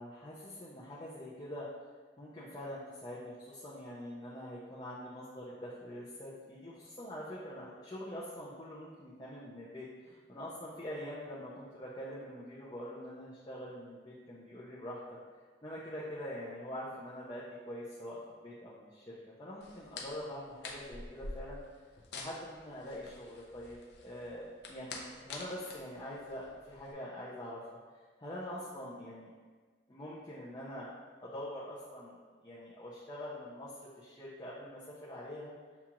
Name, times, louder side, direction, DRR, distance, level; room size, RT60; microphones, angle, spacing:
voice 1, 0.0-1.7 2.2-15.0 15.6-21.6 22.1-27.6 28.2-29.3 29.9-30.9 31.2-32.2 32.4-33.7 34.0-35.5, equal, 25° left, -8 dB, 0.5 m, -44 dB
sound 1, 19.6-26.9, left 3 dB, 75° left, 0.6 m, -48 dB
7.0 x 2.4 x 2.9 m, 1.5 s
head